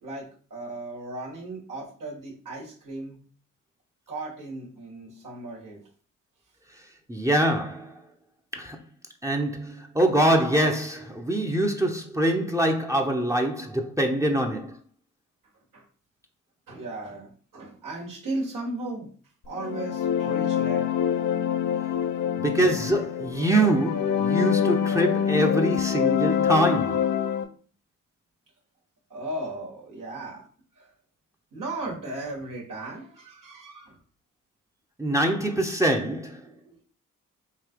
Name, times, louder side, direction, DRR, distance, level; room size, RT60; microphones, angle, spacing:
voice 1, 0.0-3.2 4.1-5.8 15.7-15.8 16.7-19.1 19.5-20.9 21.6-22.1 29.1-30.4 30.8-30.9 31.5-34.0 36.7-36.8, right 2 dB, 75° right, 2.0 m, -36 dB
voice 2, 7.1-7.9 8.5-8.8 9.2-14.8 22.4-27.2 35.0-36.5, right 1 dB, 10° right, 0.8 m, -24 dB
sound 1, 19.5-27.4, left 8 dB, 65° left, 0.7 m, -25 dB
3.9 x 2.6 x 4.7 m
supercardioid pair, 50°, 32 cm